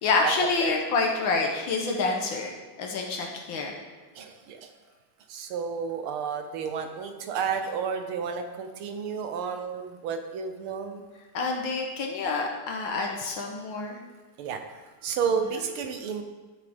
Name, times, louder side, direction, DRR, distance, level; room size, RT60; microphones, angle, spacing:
voice 1, 0.0-2.5 2.8-3.7 11.3-14.0, left 4 dB, 70° left, 1 dB, 1.7 m, -27 dB
voice 2, 4.1-4.7 5.3-11.0 14.4-16.2, right 6 dB, 90° right, 6 dB, 1.8 m, -31 dB
12.0 x 6.5 x 3.5 m, 1.2 s
omnidirectional pair, 2.3 m